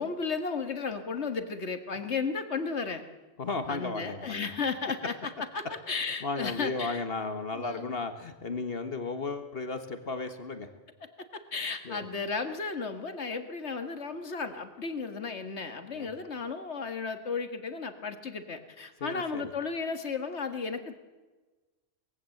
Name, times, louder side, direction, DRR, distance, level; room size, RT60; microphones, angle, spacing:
voice 1, 0.0-3.0 3.7-7.0 7.5-7.9 11.3-21.0, left 4 dB, 75° left, 8 dB, 2.0 m, -34 dB
voice 2, 3.4-4.5 6.2-10.7 11.8-12.0 15.9-16.1 19.0-19.5, left 3 dB, 55° left, 8 dB, 1.7 m, -34 dB
21.0 x 16.0 x 7.9 m, 1.2 s
omnidirectional pair, 1.2 m